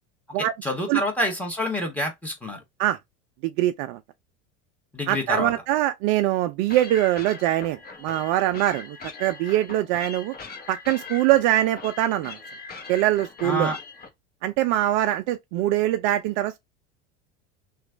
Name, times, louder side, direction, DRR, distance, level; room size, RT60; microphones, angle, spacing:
voice 1, 0.4-2.6 4.9-5.5 13.4-13.8, left 1 dB, 5° left, 1.4 m, -27 dB
voice 2, 3.4-4.0 5.1-10.4 10.7-12.4 12.9-13.7 14.4-16.7, right 14 dB, 55° right, 0.4 m, -23 dB
sound 1, 6.7-14.1, left 4 dB, 25° left, 1.0 m, -40 dB
3.0 x 2.4 x 3.8 m
hypercardioid pair, 95°, 35 cm